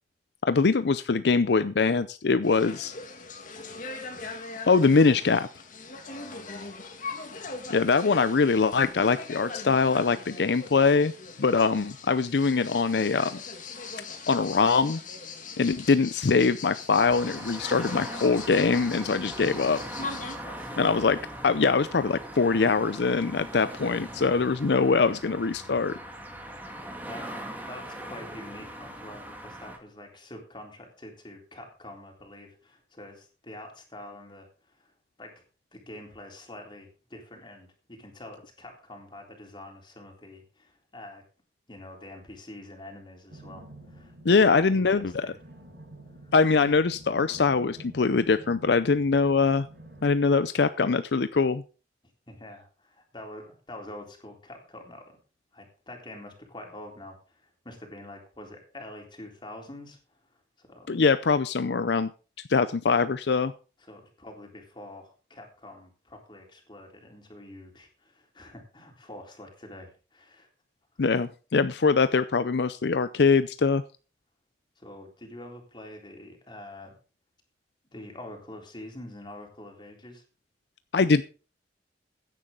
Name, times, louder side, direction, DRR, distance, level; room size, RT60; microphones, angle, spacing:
voice 1, 0.5-2.9 4.7-5.5 7.7-11.1 11.4-13.4 14.3-15.0 15.6-19.8 20.8-21.2 21.4-26.0 44.2-45.3 46.3-49.7 50.0-51.6 60.9-62.1 62.5-63.5 71.0-73.8 80.9-81.2, left 4 dB, 70° left, 13 dB, 0.6 m, -23 dB
sound 1, 2.4-20.4, left 4 dB, 50° left, 2.4 m, -41 dB
voice 2, 6.1-6.7 20.1-20.8 25.9-26.0 26.3-26.6 27.1-27.3 27.7-34.5 34.8-34.9 35.2-35.4 35.7-41.2 41.7-44.1 44.4-45.4 46.2-46.3 52.3-55.2 55.5-60.0 60.6-61.0 63.8-70.5 74.8-77.0 77.9-80.2, left 1 dB, 25° left, 2 dB, 3.7 m, -46 dB
sound 2, 17.0-29.8, right 1 dB, 10° right, 2.5 m, -40 dB
sound 3, 43.3-50.1, right 1 dB, 65° right, 6.1 m, -48 dB
16.0 x 10.0 x 3.9 m, 0.36 s
head